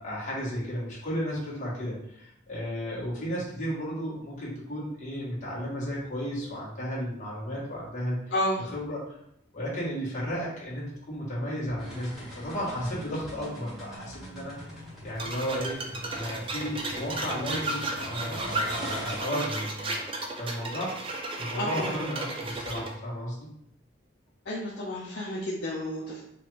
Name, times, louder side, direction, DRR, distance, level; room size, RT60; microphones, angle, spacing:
voice 1, 0.0-8.2 8.7-9.0 9.5-14.5 15.0-15.7 16.1-20.0 20.4-23.5, equal, 40° left, -7 dB, 1.4 m, -34 dB
voice 2, 8.3-8.6 21.5-21.9 24.5-26.2, left 1 dB, 60° left, -6 dB, 0.6 m, -31 dB
sound 1, 11.8-19.2, equal, ahead, 1.2 m, -43 dB
sound 2, 15.2-22.9, right 2 dB, 25° right, 0.4 m, -34 dB
4.8 x 2.5 x 3.1 m, 0.77 s
head